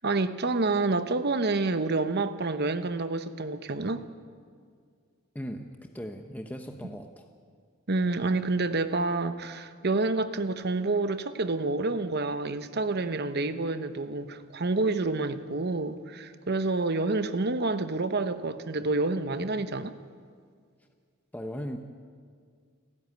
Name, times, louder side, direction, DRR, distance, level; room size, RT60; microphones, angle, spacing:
voice 1, 0.0-4.1 7.9-19.9, right 3 dB, 55° right, 11 dB, 1.0 m, -28 dB
voice 2, 5.3-7.3 21.3-21.8, equal, 10° left, 4 dB, 0.9 m, -38 dB
29.0 x 11.0 x 9.4 m, 2.1 s
head